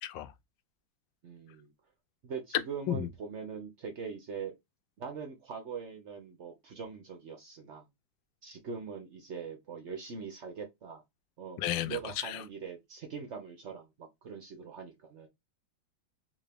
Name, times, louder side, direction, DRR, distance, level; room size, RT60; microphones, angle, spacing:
voice 1, 0.0-0.3 2.9-3.1 11.6-12.4, left 12 dB, 75° left, 1.3 m, -33 dB
voice 2, 1.2-1.7 2.2-4.5 5.0-7.8 8.4-11.0 11.4-11.6 11.9-15.3, right 6 dB, 70° right, 0.6 m, -42 dB
3.6 x 2.6 x 3.4 m
omnidirectional pair, 2.1 m